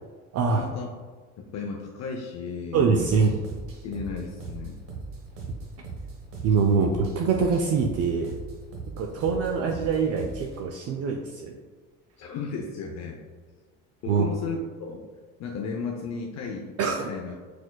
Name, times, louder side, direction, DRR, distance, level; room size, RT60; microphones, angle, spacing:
voice 1, 0.5-0.9 1.4-3.2 3.8-4.8 6.6-6.7 12.2-13.2 14.0-15.0 15.4-17.3, left 4 dB, 45° left, 0 dB, 0.6 m, -35 dB
voice 2, 2.7-3.4 6.4-8.3 9.0-11.5 14.1-14.3 16.8-17.1, right 5 dB, 45° right, 3 dB, 0.4 m, -24 dB
sound 1, 3.0-10.6, right 4 dB, 80° right, 1.1 m, -39 dB
4.5 x 4.2 x 2.2 m, 1.5 s
supercardioid pair, 90°, 36 cm